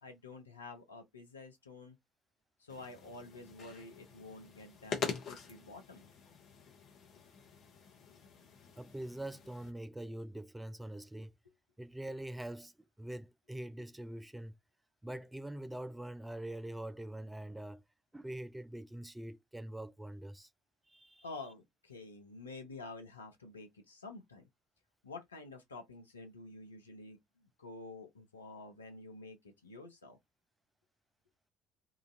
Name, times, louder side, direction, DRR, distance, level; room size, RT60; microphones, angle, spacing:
voice 1, 0.0-2.0 2.6-5.0 5.3-6.1 21.2-24.5 25.0-30.2, left 3 dB, 90° left, 0.7 m, -49 dB
sound 1, 2.7-9.7, left 6 dB, 55° left, 0.9 m, -45 dB
voice 2, 8.8-11.3 11.8-14.5 15.0-17.8 18.1-20.5 20.9-21.2, right 1 dB, 10° right, 0.3 m, -44 dB
2.9 x 2.4 x 2.6 m
figure-of-eight pair, 55°, 0 cm